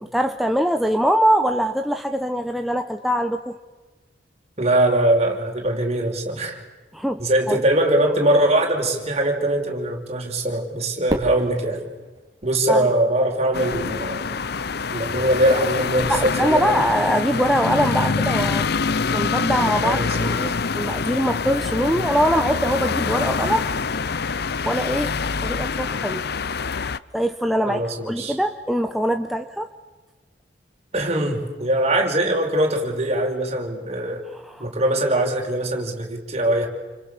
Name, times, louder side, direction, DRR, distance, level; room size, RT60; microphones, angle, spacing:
voice 1, 0.0-3.6 6.9-7.6 12.7-12.9 16.1-18.7 19.1-23.7 24.1-24.2 24.6-25.1 25.4-26.3 27.1-29.7 34.3-34.7, equal, ahead, 5 dB, 1.1 m, -23 dB
voice 2, 4.6-6.6 7.2-11.9 12.4-14.3 14.9-16.9 19.8-20.5 27.6-28.3 30.9-34.2 34.6-36.7, right 1 dB, 40° right, 2 dB, 5.3 m, -22 dB
Fireworks, 11.1-13.4, right 1 dB, 20° right, 3.8 m, -32 dB
sound 1, 13.5-27.0, left 4 dB, 60° left, 0.8 m, -25 dB
30.0 x 28.5 x 6.8 m, 1.2 s
head